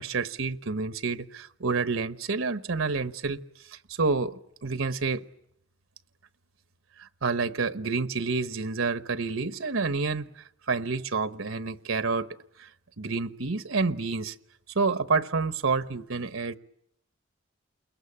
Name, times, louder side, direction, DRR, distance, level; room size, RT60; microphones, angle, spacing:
voice 1, 0.0-3.4 3.7-5.2 7.0-10.3 10.7-12.3 12.6-12.7 13.0-14.3 14.7-16.6, right 4 dB, 80° right, 1.1 m, -28 dB
29.0 x 22.0 x 8.6 m
head